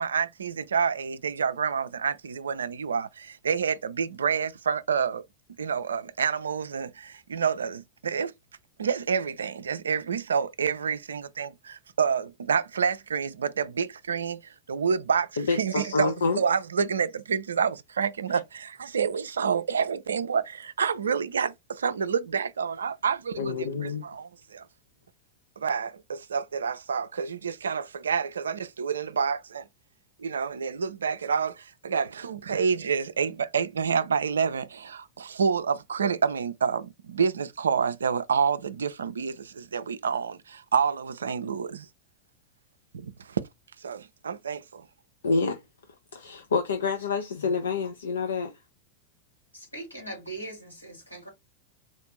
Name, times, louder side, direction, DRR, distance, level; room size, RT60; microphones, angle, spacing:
voice 1, 0.0-5.2 5.6-8.3 8.8-24.7 25.6-29.6 30.2-41.9 42.9-43.4 43.8-44.9, right 6 dB, 70° right, 0.4 m, -28 dB
voice 2, 15.4-16.4 23.4-24.0 45.2-45.6 46.1-48.5, left 4 dB, 70° left, 0.5 m, -27 dB
voice 3, 49.5-51.3, right 2 dB, 90° left, 2.0 m, -40 dB
4.1 x 2.4 x 3.0 m
figure-of-eight pair, 90°, 0 cm